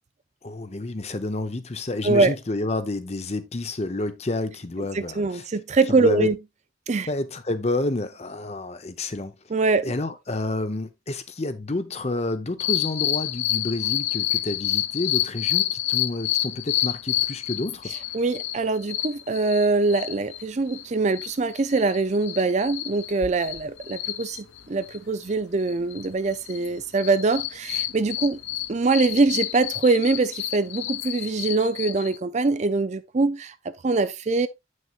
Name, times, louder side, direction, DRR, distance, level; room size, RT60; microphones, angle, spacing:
voice 1, 0.4-5.4 5.9-6.3 7.1-9.3 9.8-17.9, left 2 dB, 35° left, 0.8 m, -29 dB
voice 2, 2.0-2.4 4.9-6.4 6.9-7.1 9.5-9.9 18.1-28.4 28.7-34.5, right 3 dB, 35° right, 0.4 m, -23 dB
sound 1, 12.6-20.4 20.7-20.8 21.1-25.3 25.6-26.7 27.0-32.2, left 14 dB, 80° left, 0.7 m, -29 dB
8.7 x 6.4 x 2.4 m
head